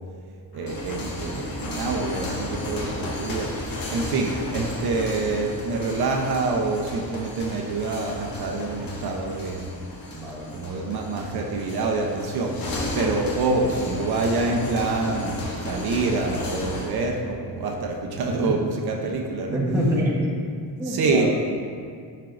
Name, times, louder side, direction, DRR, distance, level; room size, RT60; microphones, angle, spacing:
sound 1, 0.5-17.0, left 1 dB, 55° left, 1.3 m, -34 dB
voice 1, 0.5-3.5 3.9-9.7 10.5-12.5 12.9-19.6 20.8-21.3, right 3 dB, 65° right, 1 dB, 0.8 m, -26 dB
voice 2, 5.2-5.5 10.1-10.5 18.3-18.5 19.5-20.3 20.8-21.3, equal, 5° right, -6 dB, 1.1 m, -26 dB
10.5 x 4.5 x 2.6 m, 2.2 s
cardioid pair, 155°, 40 cm